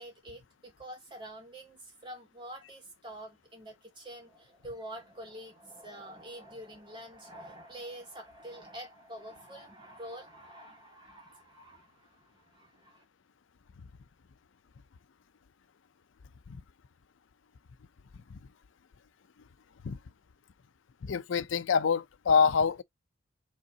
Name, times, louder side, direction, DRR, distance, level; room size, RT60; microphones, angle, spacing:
voice 1, 0.0-13.0, right 1 dB, 25° right, 2.4 m, -47 dB
voice 2, 21.0-22.8, left 5 dB, 85° left, 0.5 m, -26 dB
5.3 x 3.7 x 2.7 m
head